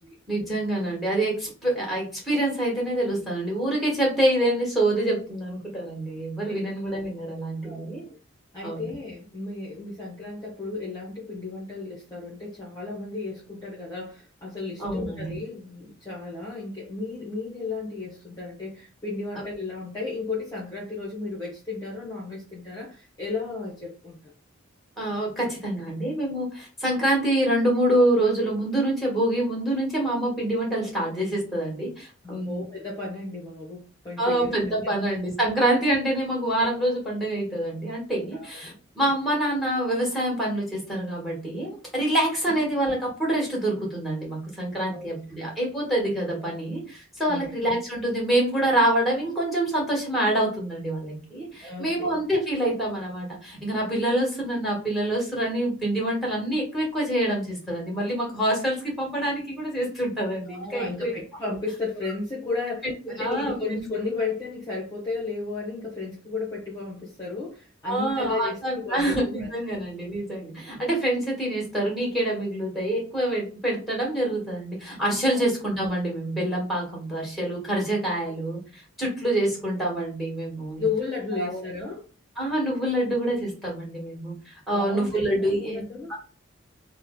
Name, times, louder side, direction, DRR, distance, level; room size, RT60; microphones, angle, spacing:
voice 1, 0.3-8.0 8.6-8.9 14.8-15.4 25.0-32.6 34.2-61.1 63.2-63.8 67.8-80.8 81.3-81.6 82.4-85.8 86.1-86.2, right 1 dB, ahead, -3 dB, 1.4 m, -26 dB
voice 2, 7.6-8.2 8.5-24.3 32.2-34.9 38.3-38.8 42.5-42.6 44.8-45.1 47.3-47.6 51.6-52.1 60.5-69.8 80.8-82.1 84.7-86.1, left 3 dB, 15° left, -5 dB, 0.8 m, -34 dB
3.1 x 2.1 x 3.7 m, 0.37 s
head